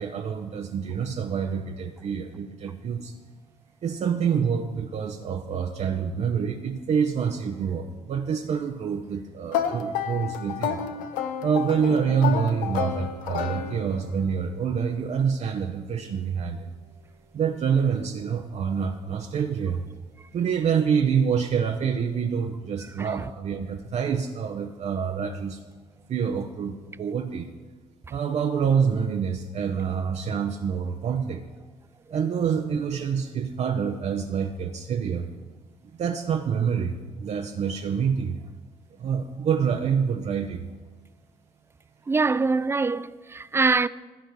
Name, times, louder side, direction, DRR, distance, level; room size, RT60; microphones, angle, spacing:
voice 1, 0.0-3.1 3.8-10.8 11.4-16.7 17.3-19.8 20.3-25.6 26.1-27.5 28.1-31.4 32.1-35.3 35.9-38.4 39.0-40.7, right 7 dB, 50° right, 0.7 m, -26 dB
sound 1, 9.5-14.1, left 8 dB, 65° left, 0.7 m, -30 dB
sound 2, 11.9-20.3, right 4 dB, 70° right, 1.2 m, -50 dB
voice 2, 42.1-43.9, right 4 dB, 15° right, 0.4 m, -24 dB
14.0 x 5.1 x 5.9 m
hypercardioid pair, 45°, 15 cm